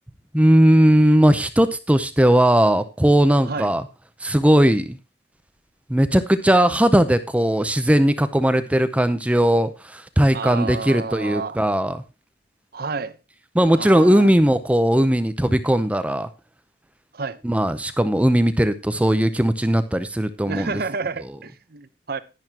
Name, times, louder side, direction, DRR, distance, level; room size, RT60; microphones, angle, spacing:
voice 1, 0.3-3.9 4.2-5.0 5.9-12.0 13.5-16.3 17.4-20.8, right 1 dB, 5° right, 0.6 m, -18 dB
voice 2, 10.3-11.6 12.7-13.2 13.7-14.3 17.1-17.4 20.5-22.2, right 4 dB, 55° right, 0.9 m, -30 dB
11.0 x 10.5 x 2.9 m
head